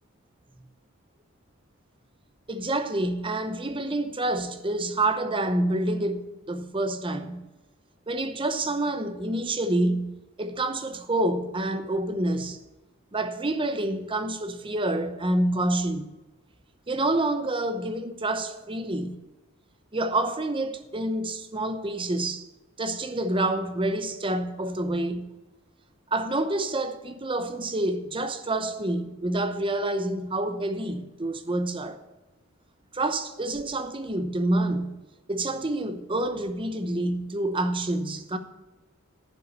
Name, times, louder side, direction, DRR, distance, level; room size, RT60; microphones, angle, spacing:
voice 1, 2.5-7.5 8.1-12.6 13.1-16.1 16.9-19.2 19.9-22.5 22.8-25.3 26.1-32.0 32.9-35.0 35.3-38.4, right 1 dB, 25° right, 0.8 m, -28 dB
11.0 x 5.8 x 8.0 m
head